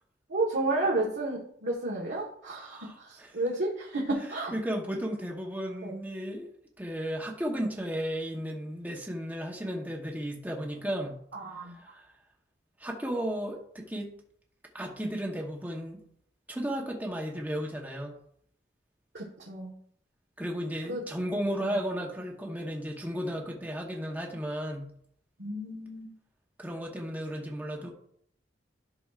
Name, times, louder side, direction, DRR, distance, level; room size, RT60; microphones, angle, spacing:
voice 1, 0.3-4.5 5.8-6.0 11.3-11.8 19.1-19.7 20.9-21.0 21.6-21.8 25.4-26.1, right 2 dB, 75° right, -3 dB, 1.4 m, -32 dB
voice 2, 2.6-3.3 4.5-6.5 6.8-11.2 11.8-12.0 12.8-14.1 14.7-16.0 16.5-18.2 20.4-24.9 26.6-27.9, equal, 10° right, 0 dB, 1.0 m, -34 dB
11.0 x 6.1 x 2.5 m, 0.66 s
head